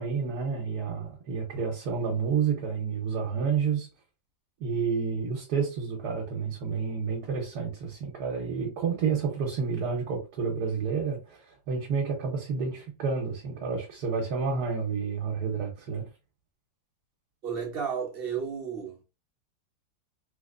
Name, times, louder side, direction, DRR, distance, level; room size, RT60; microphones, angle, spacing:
voice 1, 0.0-3.9 4.6-11.4 11.7-16.0, right 5 dB, 65° right, 1.3 m, -30 dB
voice 2, 17.4-19.0, right 7 dB, 45° right, 0.9 m, -33 dB
3.6 x 3.0 x 2.4 m
omnidirectional pair, 1.9 m